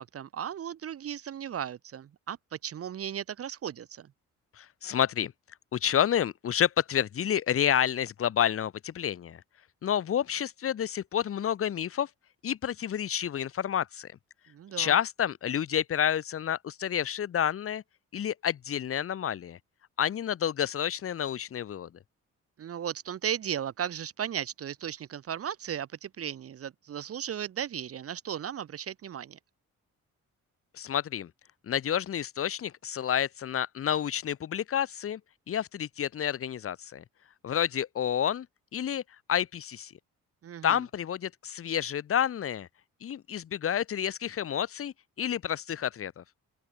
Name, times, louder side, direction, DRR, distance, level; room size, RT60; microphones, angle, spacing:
voice 1, 0.0-4.1 14.5-14.9 22.6-29.4 40.4-40.8, right 9 dB, 50° right, 1.0 m, -36 dB
voice 2, 4.6-5.3 5.7-9.4 9.8-12.1 12.4-14.2 14.8-17.8 18.1-19.6 20.0-21.9 30.7-31.3 31.7-35.2 35.5-37.0 37.4-38.5 38.7-39.0 39.3-39.9 40.6-42.7 43.0-46.2, left 9 dB, 50° left, 1.1 m, -29 dB
open air
cardioid pair, 90°, 30 cm